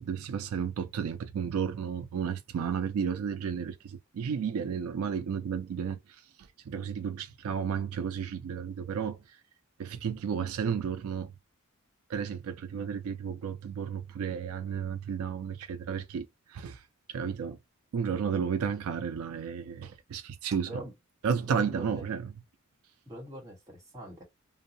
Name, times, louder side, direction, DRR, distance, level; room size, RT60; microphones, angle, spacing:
voice 1, 0.0-9.4 9.8-11.3 12.1-17.6 17.9-20.8 21.2-22.3, right 7 dB, 75° right, 0.3 m, -33 dB
voice 2, 21.4-22.1 23.1-24.2, equal, 15° right, 1.2 m, -42 dB
2.6 x 2.0 x 2.5 m
head